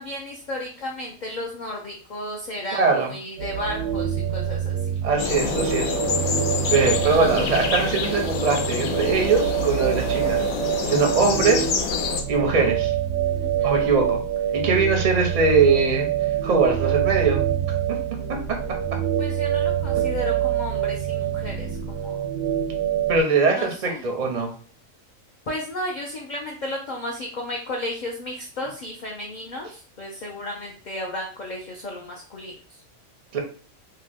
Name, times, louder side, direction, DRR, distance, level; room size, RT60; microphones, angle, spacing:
voice 1, 0.0-4.8 13.4-13.7 19.2-22.2 23.5-24.0 25.5-32.5, left 1 dB, 65° left, -1 dB, 0.4 m, -33 dB
voice 2, 2.7-3.1 5.0-6.0 6.7-10.4 10.9-11.7 12.3-12.9 13.6-14.2 14.5-16.1 16.4-17.4 17.9-18.0 18.3-18.4 23.1-24.5 33.3-33.4, right 4 dB, 50° right, 2 dB, 0.4 m, -21 dB
sound 1, 3.4-23.2, right 10 dB, 85° right, 1.0 m, -26 dB
sound 2, 5.2-12.2, left 7 dB, 85° left, 1.0 m, -27 dB
2.8 x 2.2 x 3.3 m, 0.42 s
omnidirectional pair, 1.4 m